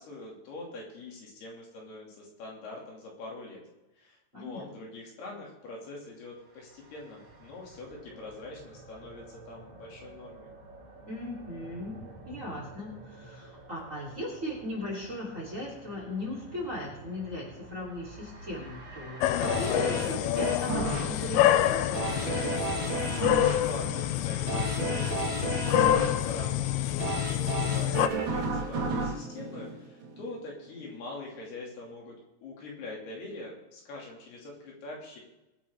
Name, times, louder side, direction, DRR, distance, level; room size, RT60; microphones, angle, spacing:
voice 1, 0.0-3.6 4.0-10.5 23.4-32.2 32.4-35.2, left 2 dB, 65° left, -2 dB, 4.5 m, -44 dB
voice 2, 4.3-4.7 11.1-12.0 12.3-22.3, left 1 dB, 20° right, -3 dB, 3.4 m, -38 dB
sound 1, 6.2-25.1, right 2 dB, 40° right, 3.8 m, -49 dB
sound 2, 19.2-28.1, left 13 dB, 90° left, 2.2 m, -27 dB
sound 3, 19.4-30.4 30.8-30.9, right 3 dB, 75° right, 1.1 m, -33 dB
23.5 x 8.6 x 3.7 m, 0.96 s
omnidirectional pair, 5.1 m